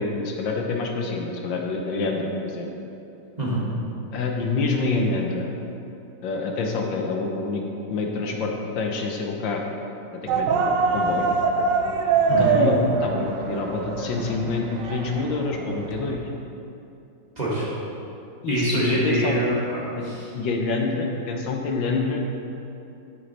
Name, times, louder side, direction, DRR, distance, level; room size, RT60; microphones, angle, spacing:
voice 1, 0.0-2.7 4.1-5.6 6.2-7.6 7.9-9.6 10.1-11.4 12.4-16.3 18.4-19.4 20.0-20.1 20.3-22.3, left 3 dB, 85° left, 1 dB, 1.6 m, -27 dB
voice 2, 3.4-3.7 12.3-12.6 17.4-17.7 18.5-20.3, right 1 dB, 25° right, -7 dB, 1.3 m, -25 dB
sound 1, 10.3-16.2, right 4 dB, 80° right, 1.3 m, -24 dB
9.4 x 6.4 x 4.0 m, 2.8 s
omnidirectional pair, 2.0 m